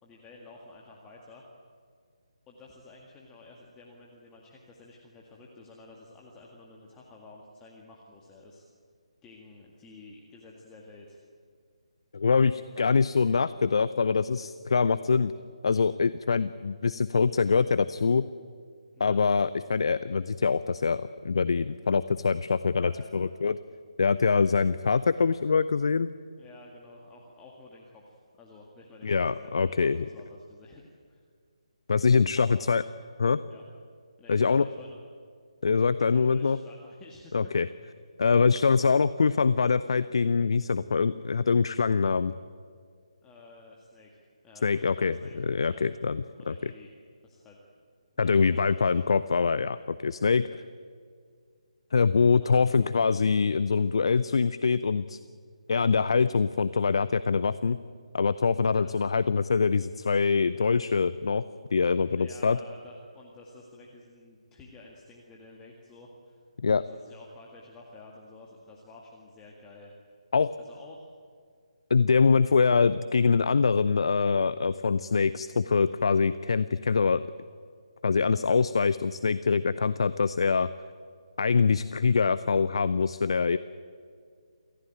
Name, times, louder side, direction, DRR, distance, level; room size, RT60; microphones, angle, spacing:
voice 1, 0.0-1.4 2.5-8.6 9.2-11.2 12.7-12.9 18.9-19.2 22.8-23.3 26.4-31.2 32.4-32.7 33.5-33.6 34.2-35.1 36.0-37.3 43.2-45.4 45.7-45.9 46.4-46.9 47.2-47.6 48.1-49.1 52.4-52.7 58.7-58.9 62.2-66.4 66.8-69.9 70.6-71.1 79.7-79.8, left 2 dB, 10° left, -2 dB, 2.0 m, -51 dB
voice 2, 12.1-15.3 15.6-18.3 19.0-23.6 24.0-26.1 29.0-30.0 31.9-32.8 33.2-33.4 34.3-34.6 35.6-36.6 37.3-37.7 38.2-42.3 44.6-46.5 48.2-50.5 51.9-55.2 55.7-57.8 58.1-61.4 61.7-62.6 66.6-66.8 70.3-70.5 71.9-77.2 78.0-80.7 81.4-83.6, left 5 dB, 50° left, 14 dB, 0.6 m, -24 dB
27.5 x 15.0 x 9.1 m, 2.1 s
figure-of-eight pair, 145°, 4 cm